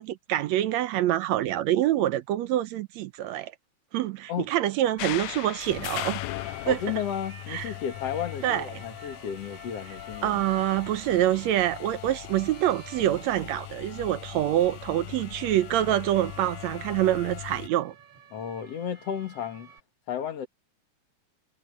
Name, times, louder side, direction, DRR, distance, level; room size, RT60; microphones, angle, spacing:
voice 1, 0.0-3.5 3.9-6.2 6.7-6.8 7.5-7.7 8.4-8.7 10.2-17.9, right 13 dB, 75° right, 1.8 m, -26 dB
sound 1, 4.7-19.8, right 6 dB, 55° right, 4.2 m, -51 dB
sound 2, 5.0-17.7, left 18 dB, 85° left, 2.1 m, -39 dB
voice 2, 6.6-10.4 18.3-19.7 20.1-20.5, left 9 dB, 55° left, 2.8 m, -33 dB
omnidirectional pair, 3.4 m